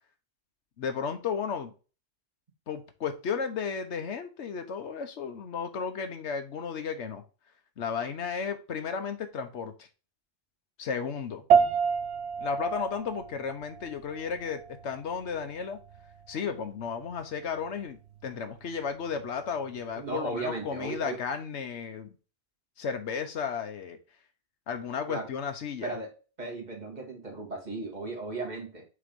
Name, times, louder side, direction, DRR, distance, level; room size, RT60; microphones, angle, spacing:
voice 1, 0.8-1.7 2.7-7.2 7.8-9.9 10.8-11.4 12.4-15.8 16.3-22.1 22.8-24.0 24.7-25.9, left 6 dB, 80° left, 1.2 m, -34 dB
sound 1, 11.5-21.1, right 7 dB, 75° right, 0.9 m, -31 dB
voice 2, 20.0-21.2 25.1-25.3 25.8-28.8, right 3 dB, 40° right, 1.8 m, -36 dB
6.7 x 3.0 x 5.2 m
omnidirectional pair, 1.1 m